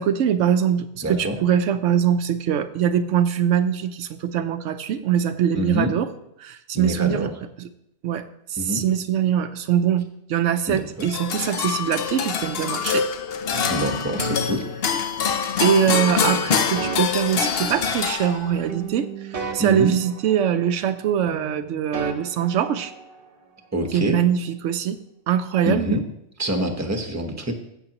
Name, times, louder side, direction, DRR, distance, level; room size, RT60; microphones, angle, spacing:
voice 1, 0.0-6.1 6.4-7.3 7.6-7.7 8.0-8.2 8.5-13.1 15.6-22.9 23.9-25.0 25.3-26.0, right 9 dB, 80° right, 9 dB, 1.0 m, -22 dB
voice 2, 1.0-1.4 5.5-5.9 6.7-7.3 8.6-8.8 10.7-11.1 13.7-14.6 19.6-19.9 23.7-24.2 25.7-26.0 26.4-27.5, equal, 15° right, 4 dB, 1.0 m, -26 dB
sound 1, 11.0-18.7, left 7 dB, 60° left, 0.9 m, -25 dB
sound 2, 13.5-15.5 16.1-18.4 18.7-21.0 21.3-23.3, right 3 dB, 50° right, 1.1 m, -35 dB
15.0 x 7.2 x 2.9 m, 0.79 s
omnidirectional pair, 1.2 m